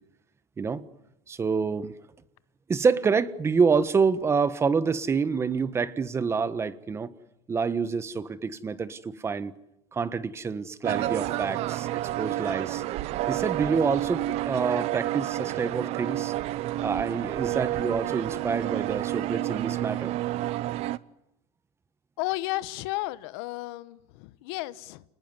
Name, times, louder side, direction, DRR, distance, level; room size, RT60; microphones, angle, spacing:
voice 1, 1.3-1.9 2.7-7.1 7.5-9.5 9.9-12.8 13.3-16.3 16.8-20.2, right 5 dB, 20° right, 1.4 m, -27 dB
sound 1, 10.8-21.0, right 15 dB, 55° right, 0.9 m, -30 dB
voice 2, 22.2-25.0, left 19 dB, 85° left, 1.2 m, -33 dB
30.0 x 20.0 x 9.7 m
cardioid pair, 145°, 13 cm